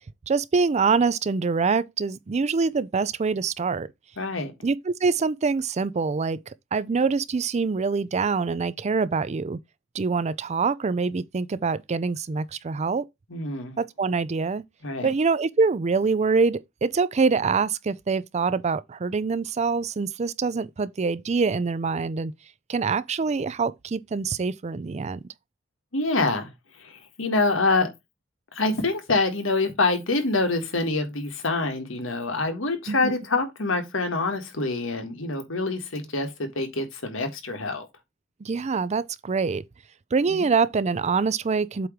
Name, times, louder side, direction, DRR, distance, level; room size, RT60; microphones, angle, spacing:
voice 1, 0.3-3.9 4.6-9.6 9.9-13.0 13.8-14.6 15.0-22.3 22.7-25.2 32.9-33.1 38.4-39.6 40.1-41.9, right 4 dB, 35° right, 0.4 m, -25 dB
voice 2, 4.2-4.5 13.3-13.8 14.8-15.1 25.9-26.5 26.8-27.9 28.5-37.8 40.3-40.4, left 3 dB, 80° left, 1.7 m, -26 dB
7.9 x 3.0 x 5.1 m
head